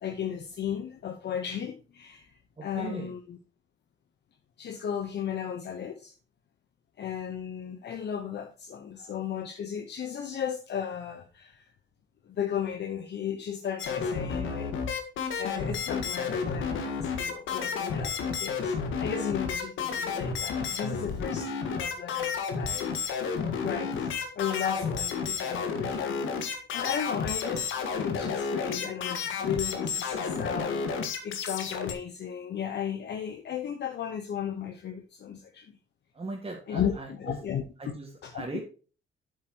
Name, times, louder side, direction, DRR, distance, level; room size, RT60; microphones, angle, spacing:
voice 1, 0.0-3.4 4.6-6.1 7.0-11.7 12.2-14.7 15.4-23.0 23.6-35.8 36.7-37.6 38.2-38.4, left 8 dB, 60° left, 5 dB, 1.1 m, -35 dB
voice 2, 2.6-3.1 9.0-9.1 36.1-37.4 37.8-38.6, right 3 dB, 30° right, -1 dB, 2.0 m, -39 dB
sound 1, 13.8-31.9, left 5 dB, 80° left, 1.7 m, -31 dB
8.6 x 7.7 x 3.0 m, 0.36 s
cardioid pair, 90°, 20 cm